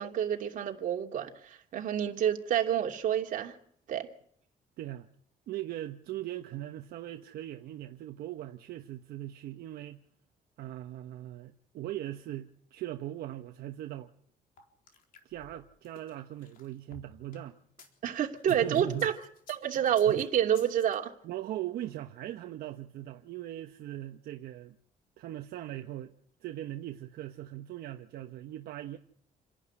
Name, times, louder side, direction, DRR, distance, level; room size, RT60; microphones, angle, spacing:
voice 1, 0.0-3.6 3.9-4.1 18.0-19.1 19.5-21.1, right 9 dB, 55° right, 2.9 m, -28 dB
voice 2, 4.8-5.1 5.5-10.0 10.6-14.1 15.2-17.6 18.5-19.1 20.1-20.2 21.2-24.8 25.2-26.1 26.4-29.0, right 13 dB, 80° right, 1.2 m, -40 dB
sound 1, 14.6-17.9 18.4-20.9, left 5 dB, 65° left, 4.0 m, -54 dB
28.0 x 11.5 x 9.9 m
cardioid pair, 145°, 16 cm